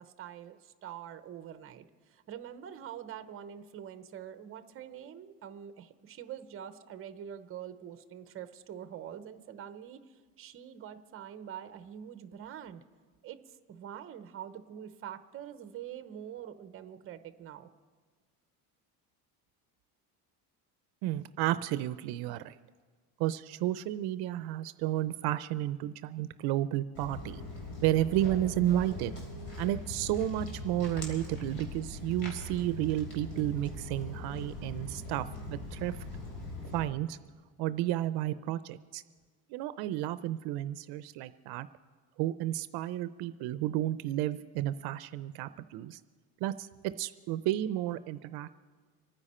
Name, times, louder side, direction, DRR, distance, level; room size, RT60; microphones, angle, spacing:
voice 1, 0.0-12.8 13.2-17.7, right 9 dB, 35° right, 11 dB, 0.8 m, -45 dB
voice 2, 21.0-22.6 23.2-27.4 27.8-29.2 29.6-36.0 36.7-37.2 37.6-39.0 39.5-41.7 42.2-46.0 46.4-48.5, right 13 dB, 75° right, 13 dB, 0.5 m, -32 dB
Walk footsteps, 26.9-36.8, left 2 dB, 65° left, 4.1 m, -41 dB
26.0 x 9.8 x 4.3 m, 1.5 s
cardioid pair, 155°, 38 cm